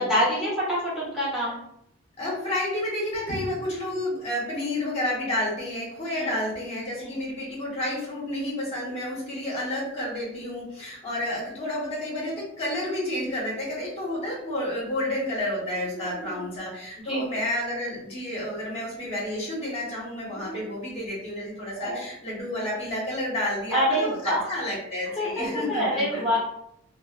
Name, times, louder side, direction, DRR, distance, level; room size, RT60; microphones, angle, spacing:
voice 1, 0.0-1.6 6.1-6.3 7.0-7.1 15.9-16.4 17.0-17.2 20.3-20.6 21.8-22.0 23.7-24.5 25.2-26.4, equal, ahead, -10 dB, 1.0 m, -26 dB
voice 2, 2.2-26.4, left 1 dB, 30° left, -5 dB, 1.0 m, -30 dB
2.4 x 2.3 x 2.3 m, 0.76 s
head